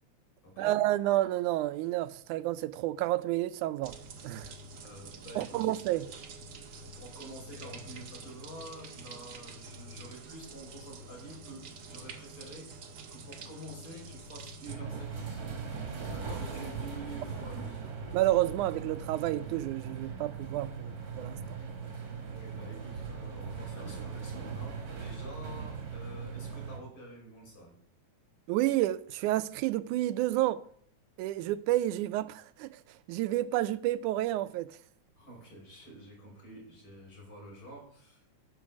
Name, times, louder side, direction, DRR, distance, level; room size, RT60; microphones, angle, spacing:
voice 1, 0.6-3.9 4.2-4.5 5.4-6.1 18.1-21.6 28.5-30.6 31.2-34.8, right 15 dB, 85° right, 2.1 m, -30 dB
sound 1, 3.8-14.7, right 3 dB, 65° right, 1.0 m, -47 dB
voice 2, 4.8-6.0 7.0-12.7 13.1-15.4 16.1-17.9 22.2-27.8 35.2-38.4, right 1 dB, 45° left, 6.4 m, -48 dB
sound 2, 14.7-26.8, right 5 dB, 40° right, 2.6 m, -39 dB
11.0 x 7.0 x 7.1 m
omnidirectional pair, 3.5 m